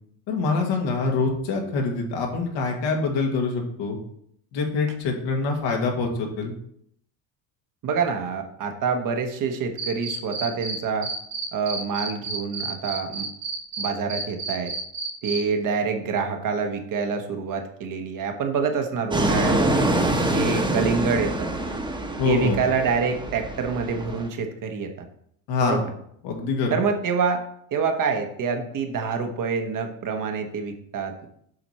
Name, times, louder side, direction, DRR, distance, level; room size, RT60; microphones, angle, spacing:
voice 1, 0.3-4.0 4.5-6.5 22.2-22.6 25.5-25.8 26.2-26.8, left 3 dB, 70° left, 1 dB, 2.0 m, -25 dB
voice 2, 7.8-11.1 11.5-13.3 13.8-14.7 15.2-19.8 20.2-21.5 22.2-24.9 25.6-25.9 26.7-27.4 27.7-31.1, right 5 dB, 45° right, 5 dB, 1.1 m, -26 dB
Cricket, 9.8-10.8 11.0-15.4, right 4 dB, 65° right, 2.0 m, -30 dB
Fixed-wing aircraft airplane, 19.1-24.3, right 1 dB, 10° right, 1.1 m, -25 dB
7.8 x 5.0 x 4.2 m, 0.68 s
cardioid pair, 115°, 44 cm